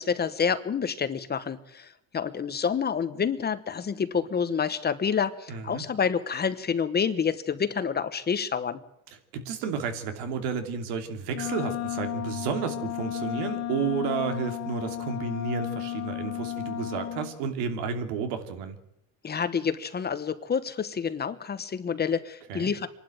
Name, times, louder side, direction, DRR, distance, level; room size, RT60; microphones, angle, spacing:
voice 1, 0.0-8.8 19.2-22.9, left 6 dB, 25° left, 12 dB, 1.0 m, -28 dB
voice 2, 5.5-5.8 9.3-18.8 22.5-22.7, right 6 dB, 85° right, 6 dB, 2.9 m, -32 dB
Wind instrument woodwind instrument, 11.3-17.4, left 11 dB, 40° left, 1.4 m, -33 dB
25.5 x 12.0 x 9.1 m, 0.81 s
cardioid pair, 140°, 39 cm